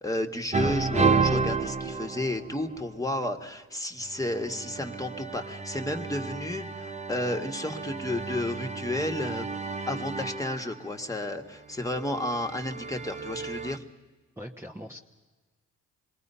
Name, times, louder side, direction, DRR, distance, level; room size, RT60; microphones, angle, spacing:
voice 1, 0.0-9.5 9.9-13.8, left 1 dB, 10° left, 4 dB, 1.7 m, -32 dB
sound 1, 0.5-2.9 4.1-10.8 11.8-13.8, right 4 dB, 25° right, 0.9 m, -31 dB
voice 2, 14.4-15.0, equal, 10° right, 0 dB, 1.2 m, -40 dB
27.0 x 21.0 x 5.6 m, 1.3 s
cardioid pair, 90°, 30 cm